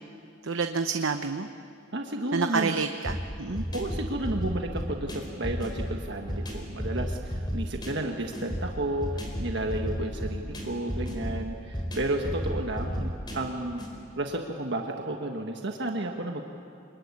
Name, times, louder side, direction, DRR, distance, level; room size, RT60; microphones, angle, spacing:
voice 1, 0.4-1.5 2.3-3.6, right 4 dB, 75° right, 7 dB, 0.9 m, -28 dB
voice 2, 1.9-2.8 3.5-13.9 14.2-16.4, right 1 dB, 60° right, 3 dB, 1.5 m, -32 dB
sound 1, 3.0-13.9, equal, 20° left, 4.3 m, -33 dB
26.5 x 21.5 x 9.7 m, 2.6 s
head